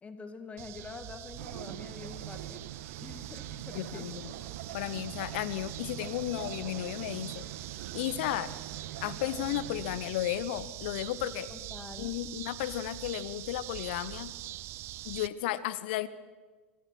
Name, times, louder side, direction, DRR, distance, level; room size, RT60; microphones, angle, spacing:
voice 1, 0.0-2.7 3.0-4.0 11.5-12.1, left 4 dB, 20° left, 8 dB, 2.0 m, -46 dB
sound 1, 0.6-15.3, right 15 dB, 45° right, 0.7 m, -44 dB
sound 2, 1.4-10.0, right 10 dB, 60° right, 1.6 m, -43 dB
voice 2, 3.7-4.3 4.7-7.5 7.9-8.5 9.0-11.5 12.0-14.3 15.0-16.1, left 13 dB, 60° left, 16 dB, 1.0 m, -34 dB
27.0 x 25.0 x 4.6 m, 1.4 s
figure-of-eight pair, 85°, 6 cm